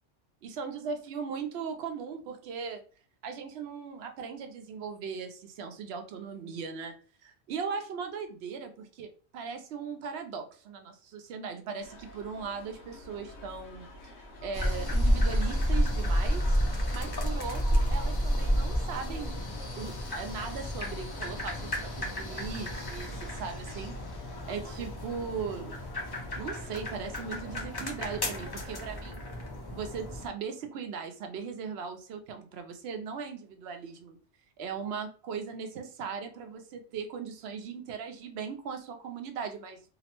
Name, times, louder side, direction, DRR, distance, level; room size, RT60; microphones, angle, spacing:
voice 1, 0.4-2.8 3.2-13.9 14.4-16.6 16.9-19.3 19.8-24.0 24.5-25.8 26.4-29.2 29.7-34.2 34.6-39.8, right 6 dB, 70° right, 6 dB, 0.8 m, -38 dB
sound 1, 11.8-29.1, left 1 dB, 70° left, 0.9 m, -47 dB
sound 2, 14.5-30.3, equal, 35° left, 0.4 m, -31 dB
2.8 x 2.0 x 2.9 m, 0.37 s
omnidirectional pair, 1.1 m